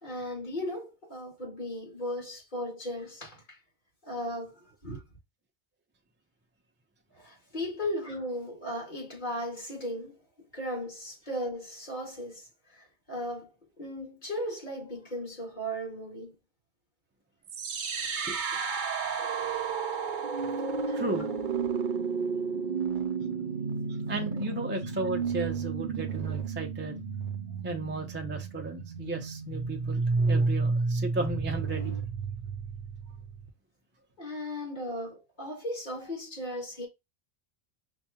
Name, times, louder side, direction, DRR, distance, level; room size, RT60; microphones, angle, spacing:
voice 1, 0.0-3.6 4.0-5.0 7.1-10.2 10.5-16.4 18.5-18.6 20.8-21.0 33.1-33.2 34.2-36.9, equal, 45° left, 2.3 m, -36 dB
sound 1, 17.5-33.5, right 4 dB, 55° right, 0.7 m, -31 dB
voice 2, 20.9-21.3 24.1-27.0 27.6-32.0, right 2 dB, 15° right, 0.4 m, -35 dB
5.8 x 2.3 x 2.8 m
omnidirectional pair, 1.1 m